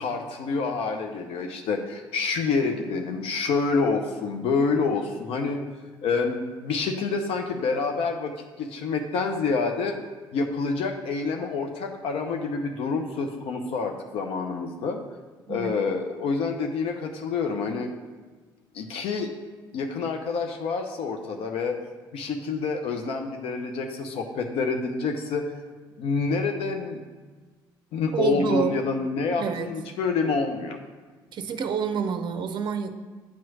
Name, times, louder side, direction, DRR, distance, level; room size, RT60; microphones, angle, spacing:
voice 1, 0.0-5.6 6.0-10.0 10.3-15.0 15.5-17.9 18.7-19.3 19.7-21.8 22.1-25.5 26.0-27.0 27.9-30.8, left 4 dB, 60° left, 4 dB, 0.6 m, -27 dB
voice 2, 15.5-15.8 28.1-28.8 29.4-29.7 31.3-32.9, right 7 dB, 45° right, 8 dB, 0.5 m, -28 dB
8.4 x 3.1 x 5.9 m, 1.4 s
hypercardioid pair, 50°, 11 cm